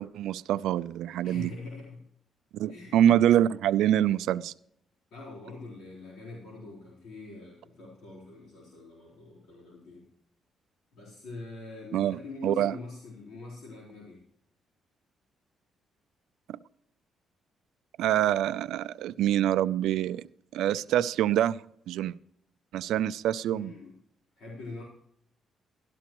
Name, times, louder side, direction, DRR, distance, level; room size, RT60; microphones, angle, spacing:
voice 1, 0.0-1.5 2.5-4.5 11.9-12.7 16.5-16.6 18.0-20.2 20.5-21.6 21.9-22.2 22.7-23.7, right 11 dB, 85° right, 14 dB, 0.4 m, -25 dB
voice 2, 1.2-2.0 2.7-3.0 5.1-10.1 10.9-14.2 23.5-24.0 24.4-24.8, left 3 dB, 75° left, -5 dB, 4.0 m, -44 dB
12.5 x 12.5 x 3.0 m, 0.70 s
cardioid pair, 90°, 0 cm